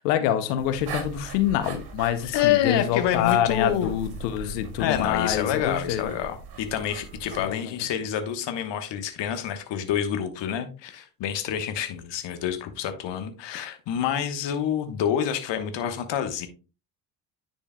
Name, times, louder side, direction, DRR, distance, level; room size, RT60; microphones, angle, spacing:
voice 1, 0.0-6.1 7.4-7.6, left 11 dB, 80° left, 0.7 m, -26 dB
sound 1, 0.6-7.5, right 4 dB, 55° right, 1.5 m, -40 dB
voice 2, 2.2-3.9 4.4-4.5 4.8-16.5, left 9 dB, 60° left, 1.2 m, -27 dB
10.0 x 4.4 x 2.2 m
hypercardioid pair, 50°, 48 cm